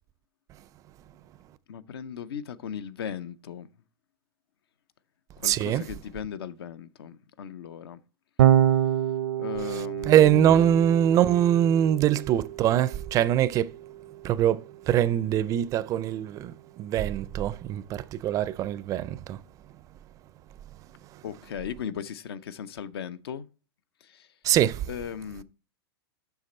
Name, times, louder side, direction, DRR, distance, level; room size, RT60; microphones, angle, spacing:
voice 1, 1.7-3.7 5.4-8.0 9.4-10.8 21.2-23.5 24.0-24.3 24.9-25.4, left 8 dB, 75° left, 0.6 m, -37 dB
voice 2, 5.4-5.9 10.1-13.7 14.2-19.4 24.4-24.8, right 11 dB, 25° right, 0.4 m, -23 dB
Electric guitar / Bass guitar, 8.4-14.8, right 11 dB, 75° right, 0.6 m, -27 dB
8.1 x 5.9 x 4.3 m
hypercardioid pair, 135°, 13 cm